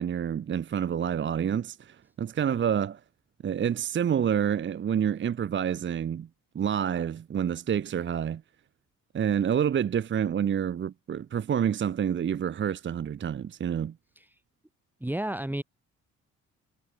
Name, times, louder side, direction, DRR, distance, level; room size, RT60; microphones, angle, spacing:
voice 1, 0.0-3.0 3.4-6.3 6.5-8.4 9.1-13.9, right 8 dB, 40° right, 0.7 m, -28 dB
voice 2, 15.0-15.6, right 1 dB, 5° right, 3.0 m, -32 dB
cardioid pair, 90°, 30 cm